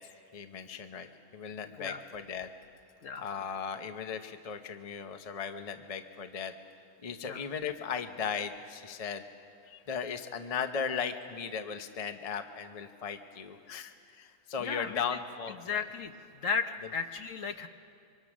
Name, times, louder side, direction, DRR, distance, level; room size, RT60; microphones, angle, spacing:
voice 1, 0.3-2.5 3.2-6.5 7.0-9.2 9.7-15.8, left 6 dB, 30° left, 8 dB, 0.8 m, -37 dB
voice 2, 14.6-15.2 15.6-16.1 16.4-17.7, left 5 dB, 60° left, 7 dB, 1.2 m, -35 dB
26.0 x 24.0 x 6.2 m, 2.4 s
omnidirectional pair, 1.6 m